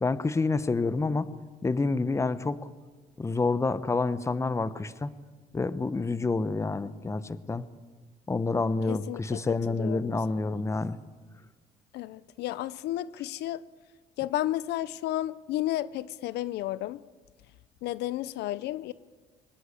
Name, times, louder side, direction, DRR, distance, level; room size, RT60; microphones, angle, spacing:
voice 1, 0.0-1.3 1.6-2.7 3.2-5.1 5.5-7.6 8.3-11.0, left 3 dB, 15° left, 14 dB, 1.0 m, -28 dB
voice 2, 8.9-10.6 11.9-13.6 14.2-17.0 17.8-18.9, left 14 dB, 80° left, 17 dB, 0.7 m, -33 dB
23.5 x 20.0 x 8.5 m, 1.4 s
cardioid pair, 110°, 17 cm